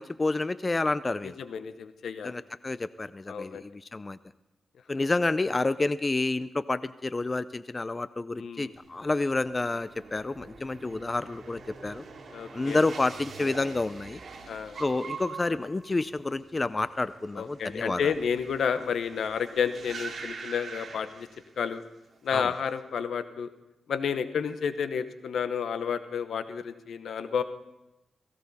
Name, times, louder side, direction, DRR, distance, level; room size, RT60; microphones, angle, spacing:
voice 1, 0.0-1.4 2.2-4.2 4.9-12.0 12.5-14.2 14.8-18.1 22.3-22.5, left 2 dB, 25° left, 15 dB, 0.4 m, -29 dB
voice 2, 1.2-2.3 3.3-3.7 8.4-8.7 12.3-12.8 14.5-14.8 17.3-21.3 21.6-21.8 22.2-23.5 23.9-27.4, left 7 dB, 75° left, 12 dB, 0.8 m, -31 dB
sound 1, 8.7-21.8 22.1-22.7, right 4 dB, 55° right, 2.6 m, -45 dB
17.0 x 16.5 x 4.1 m, 0.96 s
cardioid pair, 80°, 0 cm